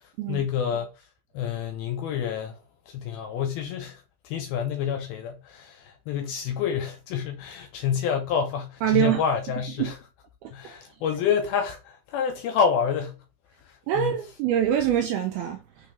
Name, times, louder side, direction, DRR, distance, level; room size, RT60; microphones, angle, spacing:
voice 1, 0.3-0.9 1.3-2.6 2.9-10.0 10.5-13.2 14.0-14.1, left 7 dB, 75° left, 2.3 m, -28 dB
voice 2, 8.8-9.2 9.8-9.9 10.4-10.7 13.9-15.6, right 10 dB, 80° right, 2.3 m, -24 dB
8.4 x 3.3 x 3.8 m
omnidirectional pair, 5.1 m